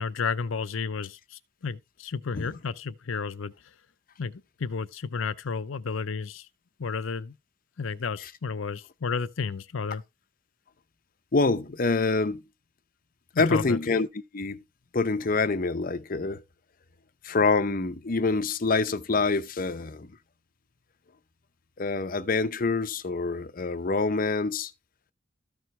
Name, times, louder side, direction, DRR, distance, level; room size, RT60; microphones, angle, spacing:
voice 1, 0.0-3.5 4.2-6.5 6.8-7.3 7.8-10.0 13.3-13.8, left 5 dB, 85° left, 0.6 m, -32 dB
voice 2, 11.3-12.4 13.4-14.1 14.3-14.6 14.9-16.4 17.2-20.1 21.8-24.7, left 3 dB, 45° left, 0.6 m, -26 dB
14.0 x 4.6 x 3.2 m
head